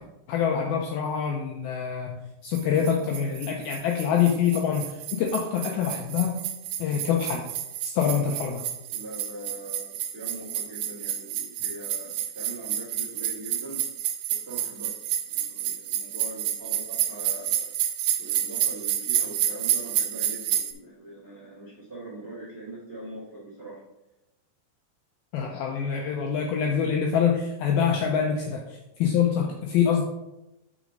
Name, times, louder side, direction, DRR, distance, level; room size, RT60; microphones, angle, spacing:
voice 1, 0.3-6.4 6.8-7.5 7.8-8.7 25.3-30.0, left 7 dB, 85° left, 1 dB, 2.2 m, -25 dB
sound 1, 2.5-20.7, right 11 dB, 80° right, 2.5 m, -30 dB
voice 2, 8.9-13.8 14.3-14.9 15.2-17.7 18.2-23.8 27.9-28.0, right 2 dB, 45° right, -7 dB, 1.1 m, -42 dB
6.3 x 6.2 x 3.9 m, 0.93 s
omnidirectional pair, 5.0 m